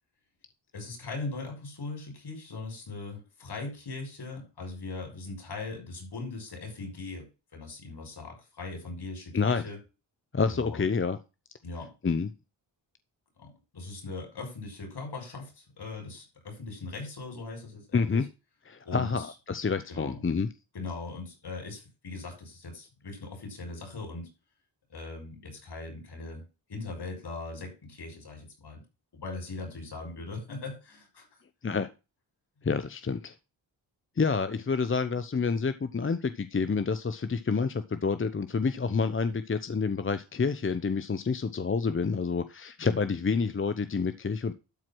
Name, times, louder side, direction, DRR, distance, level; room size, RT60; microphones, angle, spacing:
voice 1, 0.7-9.8 10.5-10.9 11.6-11.9 13.4-18.2 18.8-19.3 19.9-20.2 20.7-24.3 24.9-26.4 26.7-28.8 29.1-31.3, left 3 dB, 60° left, 3 dB, 6.7 m, -40 dB
voice 2, 10.3-11.2 12.0-12.3 17.9-18.3 18.7-20.5 31.6-31.9 32.6-33.3 34.2-44.5, left 5 dB, 25° left, 11 dB, 0.8 m, -28 dB
12.5 x 4.7 x 6.1 m, 0.29 s
cardioid pair, 80°, 45 cm